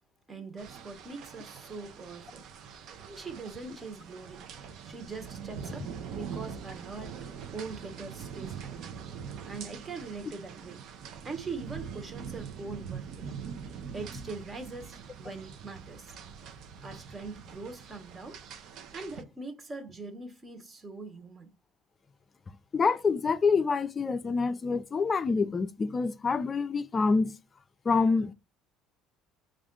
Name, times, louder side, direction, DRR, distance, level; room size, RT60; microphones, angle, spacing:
voice 1, 0.3-2.5 3.0-4.5 4.8-7.2 7.5-9.0 9.4-10.8 11.2-13.4 13.9-16.2 16.8-18.4 18.9-21.5, right 4 dB, 30° right, 1.0 m, -42 dB
sound 1, 0.6-19.2, right 7 dB, 60° right, 0.6 m, -43 dB
voice 2, 22.7-27.4 27.9-28.3, left 4 dB, 30° left, 0.4 m, -26 dB
3.5 x 2.4 x 3.7 m
supercardioid pair, 85°, 0 cm